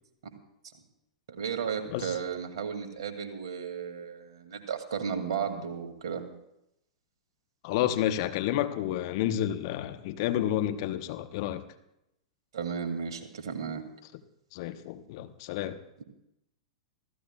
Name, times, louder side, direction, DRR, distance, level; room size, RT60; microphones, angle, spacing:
voice 1, 1.3-6.2 12.5-13.8, right 7 dB, 55° right, 6 dB, 2.4 m, -34 dB
voice 2, 7.6-11.6 14.5-15.8, left 12 dB, 45° left, 9 dB, 1.0 m, -30 dB
27.0 x 15.5 x 2.3 m, 0.83 s
figure-of-eight pair, 100°, 3 cm